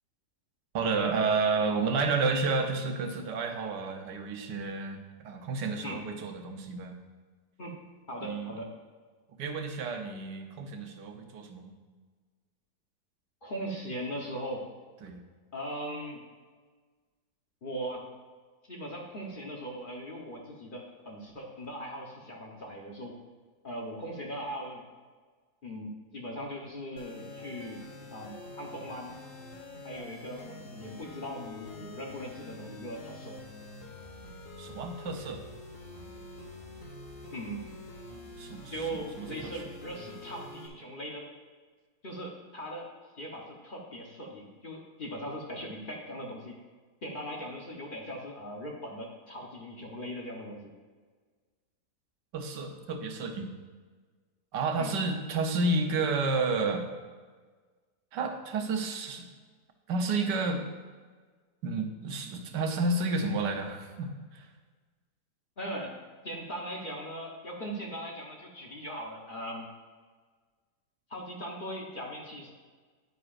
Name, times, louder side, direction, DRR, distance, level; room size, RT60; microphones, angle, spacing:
voice 1, 0.7-6.9 8.2-8.5 9.4-11.7 15.0-15.2 34.6-35.4 38.4-38.7 39.2-39.5 52.3-53.5 54.5-56.8 58.1-59.3 59.9-60.6 61.6-64.5, right 3 dB, 90° right, 5 dB, 1.5 m, -31 dB
voice 2, 8.1-8.7 13.4-14.7 15.5-16.2 17.6-18.0 18.7-23.2 23.6-24.9 25.6-27.8 28.1-29.2 29.8-33.4 37.3-37.7 38.7-41.3 42.0-42.9 43.1-46.6 47.0-50.7 54.8-54.9 65.6-66.0 66.2-69.7 71.1-72.5, equal, 35° left, -1 dB, 1.0 m, -39 dB
sound 1, 27.0-40.7, left 2 dB, 55° left, 1.5 m, -46 dB
9.7 x 9.2 x 2.5 m, 1.5 s
omnidirectional pair, 1.8 m